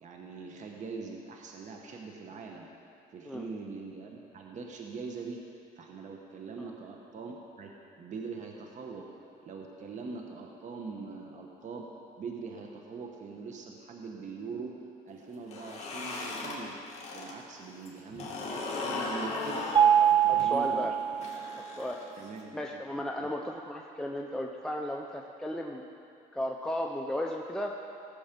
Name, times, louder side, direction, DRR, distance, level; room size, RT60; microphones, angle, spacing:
voice 1, 0.0-2.7 3.1-5.4 5.8-9.0 9.4-11.9 12.2-16.8 17.1-19.7 20.1-20.9 22.2-22.8 23.2-23.3, right 4 dB, 45° right, 1 dB, 1.2 m, -42 dB
sound 1, 15.4-17.3 17.6-22.4, left 3 dB, 40° left, 2.5 m, -37 dB
Mallet percussion, 19.8-21.7, right 9 dB, 30° right, 0.4 m, -24 dB
voice 2, 20.0-20.9 21.8-22.0 22.5-25.8 26.3-27.7, left 1 dB, 5° left, 0 dB, 0.7 m, -35 dB
18.0 x 7.2 x 5.3 m, 2.6 s
cardioid pair, 110°, 17 cm